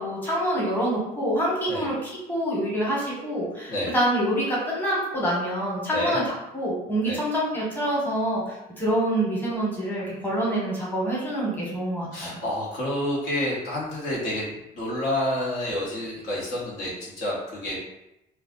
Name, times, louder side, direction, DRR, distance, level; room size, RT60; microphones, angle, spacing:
voice 1, 0.0-6.2 6.5-8.4 8.8-12.4, right 1 dB, 10° left, -5 dB, 1.2 m, -26 dB
voice 2, 12.1-17.9, left 1 dB, 75° left, -5 dB, 1.2 m, -29 dB
2.4 x 2.2 x 3.7 m, 0.89 s
cardioid pair, 110°, 17 cm